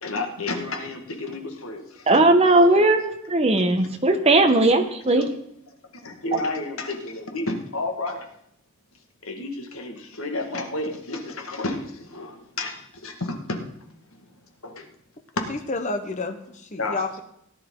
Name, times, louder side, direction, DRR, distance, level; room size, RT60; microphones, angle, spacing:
voice 1, 0.0-1.8 2.1-2.2 2.7-3.0 5.1-5.3 6.0-8.2 9.3-12.8 13.0-13.6 14.6-14.8 16.8-17.0, left 2 dB, 70° left, 3 dB, 1.9 m, -31 dB
voice 2, 2.1-5.3, right 2 dB, 30° right, 5 dB, 1.2 m, -18 dB
voice 3, 15.5-17.2, left 3 dB, 35° left, 6 dB, 1.0 m, -30 dB
17.5 x 10.0 x 3.9 m, 0.73 s
head